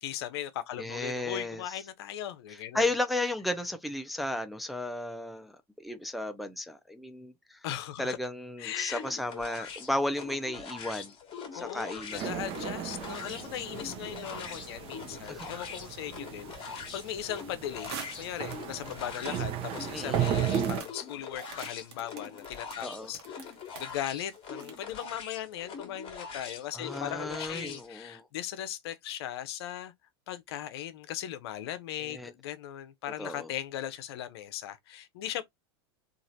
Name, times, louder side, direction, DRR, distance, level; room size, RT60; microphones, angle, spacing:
voice 1, 0.0-2.9 7.6-8.2 8.6-9.0 11.5-29.9 30.3-35.4, left 11 dB, 75° left, 0.6 m, -38 dB
voice 2, 0.8-1.7 2.7-5.6 5.8-7.6 8.0-11.1 11.5-12.3 15.2-15.5 19.9-20.2 22.8-23.1 26.7-28.2 32.1-32.3 33.2-33.5, left 1 dB, ahead, 0.4 m, -34 dB
sound 1, 8.9-27.9, left 6 dB, 45° left, 1.1 m, -43 dB
sound 2, 12.1-20.8, right 9 dB, 45° right, 0.7 m, -35 dB
sound 3, 17.8-18.8 19.5-19.6 20.5-25.0, right 7 dB, 80° right, 1.0 m, -45 dB
3.0 x 2.4 x 2.5 m
hypercardioid pair, 100°, 13 cm